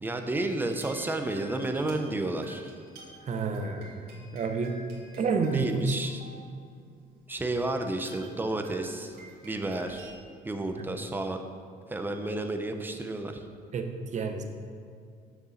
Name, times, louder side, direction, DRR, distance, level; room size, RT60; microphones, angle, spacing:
voice 1, 0.0-2.7 5.5-6.2 7.3-9.1 9.4-10.1 10.4-11.4 11.9-13.4, right 2 dB, 10° right, 5 dB, 0.8 m, -31 dB
sound 1, 0.6-6.6 7.3-7.4 7.9-10.1, equal, 80° right, 2.0 m, -51 dB
voice 2, 3.3-4.8 5.2-6.0 10.8-10.9 13.7-14.4, right 4 dB, 45° right, 6 dB, 0.9 m, -29 dB
6.8 x 6.6 x 5.8 m, 2.3 s
cardioid pair, 110°, 17 cm